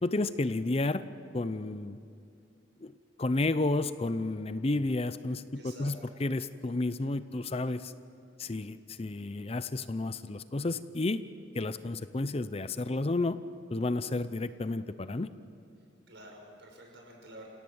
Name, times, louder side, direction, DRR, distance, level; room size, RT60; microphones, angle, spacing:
voice 1, 0.0-1.1 1.3-2.0 2.8-7.9 8.4-11.2 11.5-13.4 13.7-15.3, left 2 dB, 30° left, 13 dB, 0.6 m, -31 dB
voice 2, 5.6-6.1 16.1-17.5, right 1 dB, 65° right, 1 dB, 5.6 m, -49 dB
28.5 x 17.0 x 7.1 m, 2.5 s
head